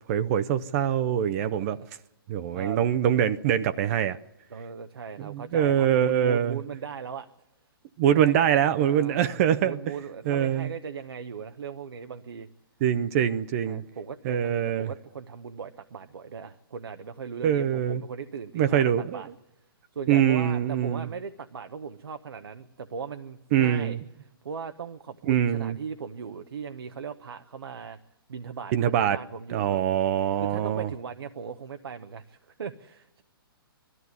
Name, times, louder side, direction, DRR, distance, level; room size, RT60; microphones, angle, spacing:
voice 1, 0.1-1.8 2.3-4.2 5.2-6.6 8.0-9.8 10.3-10.7 12.8-13.8 14.2-14.9 17.4-18.0 18.5-19.2 20.1-21.1 23.5-24.0 25.3-25.8 28.7-29.2 29.5-30.9, right 9 dB, 40° right, 0.7 m, -24 dB
voice 2, 1.4-1.9 2.5-2.8 4.5-7.3 8.0-8.5 8.8-9.4 9.6-12.5 13.6-19.3 19.9-28.0 28.3-29.8 30.4-33.2, right 6 dB, 75° right, 1.0 m, -39 dB
20.5 x 14.0 x 9.5 m
hypercardioid pair, 135°, 13 cm